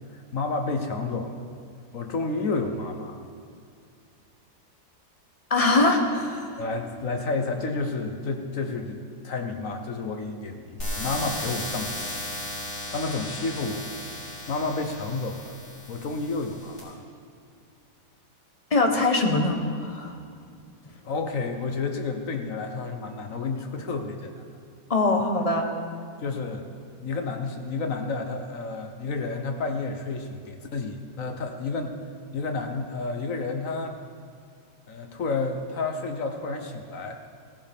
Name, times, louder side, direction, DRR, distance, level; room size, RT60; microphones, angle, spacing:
voice 1, 0.1-1.4 1.9-3.2 6.6-12.1 12.6-13.8 14.5-15.5 15.9-17.0 21.0-24.3 26.2-26.7 27.0-32.0 32.3-34.0 34.9-37.2, left 3 dB, 55° left, 5 dB, 1.2 m, -30 dB
voice 2, 5.5-6.6 18.7-20.2 24.9-25.7, left 2 dB, 25° left, 3 dB, 1.0 m, -22 dB
sound 1, 10.8-16.8, left 1 dB, 40° left, 4.3 m, -35 dB
16.5 x 15.0 x 3.5 m, 2.3 s
omnidirectional pair, 1.8 m